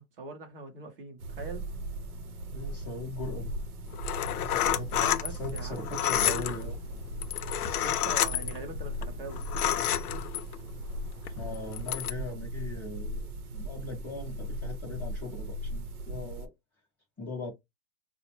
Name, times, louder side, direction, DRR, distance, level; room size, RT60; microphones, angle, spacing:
voice 1, 0.0-1.7 5.0-6.0 7.8-9.4, right 3 dB, 40° right, 0.7 m, -42 dB
sound 1, 1.2-16.5, right 1 dB, 75° right, 0.8 m, -38 dB
voice 2, 2.5-3.5 4.4-6.8 11.3-13.3 13.5-16.5 17.2-17.5, left 2 dB, 5° left, 0.6 m, -40 dB
sound 2, 3.9-10.7 11.3-12.1, left 11 dB, 75° left, 0.5 m, -30 dB
3.9 x 2.1 x 2.9 m
hypercardioid pair, 165°, 45 cm